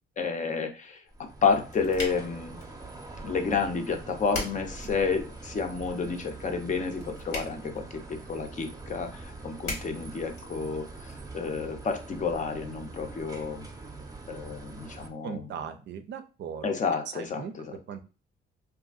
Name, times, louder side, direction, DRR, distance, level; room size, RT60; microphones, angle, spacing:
voice 1, 0.2-2.6 3.2-13.6 14.3-15.5 16.6-17.8, left 5 dB, 40° left, 5 dB, 0.6 m, -30 dB
sound 1, 1.1-15.1, right 3 dB, 20° right, 0.6 m, -44 dB
sound 2, 1.2-11.1, left 2 dB, 75° left, 1.2 m, -43 dB
voice 2, 15.2-16.6 17.1-17.5 17.9-18.0, right 7 dB, 60° right, 8 dB, 0.5 m, -38 dB
2.7 x 2.4 x 2.4 m, 0.33 s
cardioid pair, 90°, 20 cm